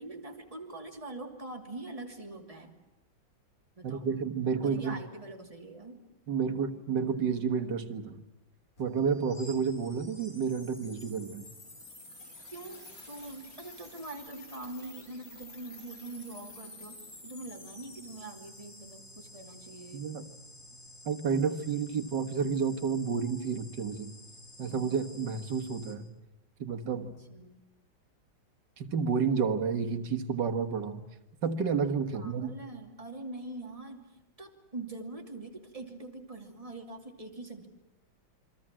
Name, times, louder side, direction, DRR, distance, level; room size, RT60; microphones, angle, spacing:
voice 1, 0.0-2.8 3.8-4.1 4.6-6.0 12.5-12.8 13.1-17.0 17.2-20.0 27.3-27.6 32.1-37.7, right 2 dB, 15° right, 2 dB, 2.8 m, -43 dB
voice 2, 3.8-5.0 6.3-8.2 8.8-11.5 19.9-20.2 21.1-24.1 24.6-26.1 26.6-27.2 28.8-31.0 31.4-32.5, right 6 dB, 60° right, 6 dB, 2.1 m, -30 dB
sound 1, 8.8-25.9, left 2 dB, 45° left, 4.7 m, -50 dB
28.0 x 24.0 x 7.5 m, 0.92 s
omnidirectional pair, 2.1 m